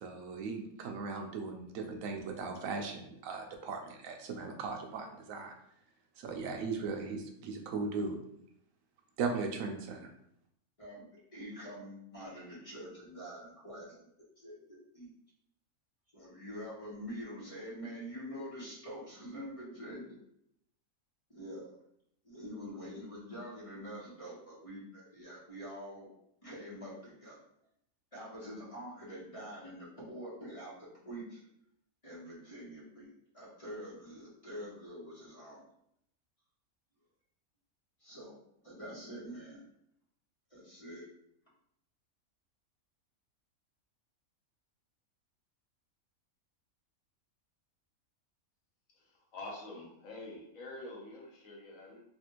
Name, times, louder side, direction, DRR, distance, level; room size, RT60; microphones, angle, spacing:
voice 1, 0.0-5.5 6.2-8.2 9.2-10.1, right 4 dB, 75° right, 3 dB, 1.0 m, -38 dB
voice 2, 10.8-14.1 14.4-14.6 14.9-15.1 16.1-20.2 21.3-21.7 22.2-26.1 26.4-27.4 28.1-31.4 32.0-35.6 38.0-38.4 38.6-39.6 40.5-41.0, equal, 25° left, -7 dB, 1.0 m, -45 dB
voice 3, 48.9-52.0, left 2 dB, 70° left, -2 dB, 1.3 m, -46 dB
3.3 x 2.4 x 2.9 m, 0.75 s
omnidirectional pair, 1.5 m